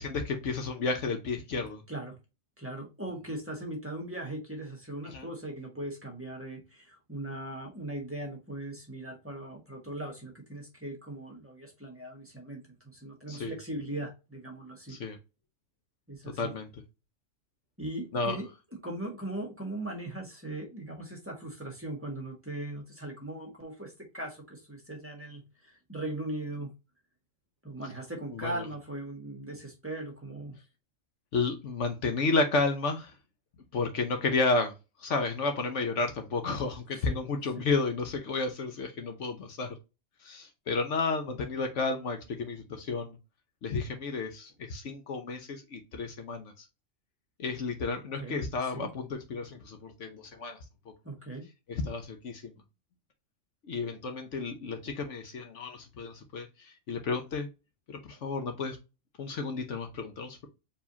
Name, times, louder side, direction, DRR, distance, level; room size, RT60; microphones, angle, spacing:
voice 1, 0.0-1.8 5.1-5.3 13.3-13.6 14.9-15.2 16.4-16.7 18.1-18.4 28.3-28.7 31.3-33.1 33.7-34.7 35.0-39.7 40.2-43.2 43.6-46.5 47.4-50.6 51.7-52.5 53.6-57.5 57.9-58.8 59.2-60.5, left 3 dB, 65° left, 5 dB, 1.2 m, -32 dB
voice 2, 2.6-12.6 12.8-15.0 16.1-16.5 17.8-18.5 18.8-26.7 27.6-30.6 36.9-37.2 37.5-37.6 48.2-48.9 51.0-51.4, right 1 dB, 10° right, 0 dB, 1.5 m, -39 dB
4.7 x 3.6 x 2.8 m, 0.27 s
omnidirectional pair, 1.3 m